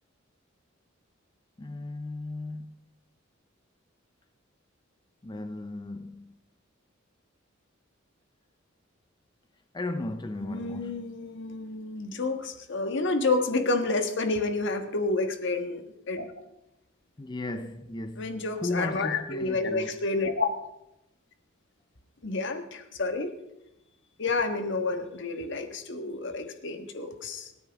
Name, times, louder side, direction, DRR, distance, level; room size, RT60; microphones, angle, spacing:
voice 1, 1.6-2.8 5.2-6.3 9.7-11.2 17.2-20.0, left 2 dB, 20° left, 0.5 m, -36 dB
voice 2, 10.4-16.3 18.2-20.5 22.2-23.3 24.2-27.5, left 3 dB, 65° left, 1.4 m, -29 dB
26.5 x 10.0 x 3.5 m
head